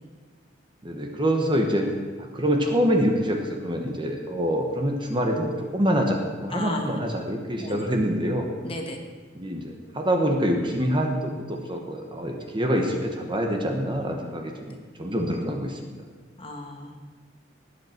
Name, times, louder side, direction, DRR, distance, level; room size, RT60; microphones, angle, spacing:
voice 1, 0.8-1.9 2.2-8.5 9.3-15.8, equal, 25° right, 2 dB, 1.3 m, -25 dB
voice 2, 6.5-7.0 7.6-7.8 8.6-9.0 16.4-17.0, left 1 dB, 30° left, 3 dB, 1.4 m, -33 dB
18.5 x 8.4 x 4.5 m, 1.5 s
head